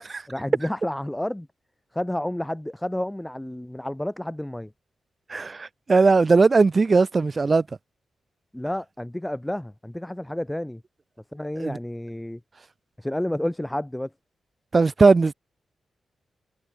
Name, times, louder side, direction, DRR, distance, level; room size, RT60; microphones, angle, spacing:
voice 1, 0.0-1.5 1.9-4.7 8.5-10.8 11.3-12.4 13.0-14.1, left 1 dB, 5° left, 7.2 m, -30 dB
voice 2, 5.3-7.6 11.6-11.8 14.7-15.3, right 4 dB, 35° right, 1.5 m, -19 dB
wide cardioid pair, 115°, 0 cm